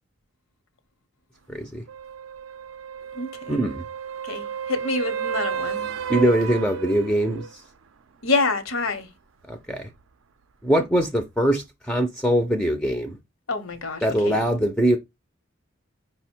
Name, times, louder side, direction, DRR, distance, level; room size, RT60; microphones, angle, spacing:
voice 1, 1.5-1.8 3.5-3.8 6.1-7.5 9.5-9.9 10.6-13.2 14.0-15.0, right 1 dB, 5° left, 0.4 m, -22 dB
sound 1, 1.9-7.5 11.6-11.7, right 8 dB, 70° right, 0.4 m, -32 dB
voice 2, 3.1-3.6 4.2-5.9 8.2-9.1 13.5-14.4, left 3 dB, 80° left, 0.8 m, -27 dB
5.0 x 2.1 x 4.2 m
head